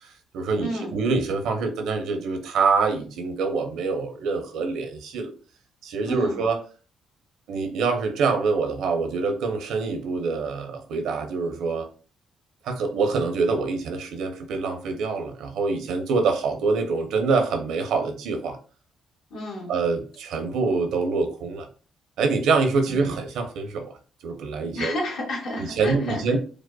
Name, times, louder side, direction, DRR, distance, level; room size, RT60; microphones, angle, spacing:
voice 1, 0.0-5.3 5.8-6.6 7.5-11.9 12.6-18.6 19.7-21.7 22.2-23.9 24.2-24.9 25.6-26.4, right 4 dB, 85° right, 5 dB, 0.8 m, -25 dB
voice 2, 0.6-0.9 6.0-6.4 19.3-19.7 22.9-23.2 24.7-26.2, left 1 dB, 75° left, -2 dB, 1.7 m, -31 dB
5.0 x 2.2 x 2.3 m, 0.38 s
cardioid pair, 90°, 0 cm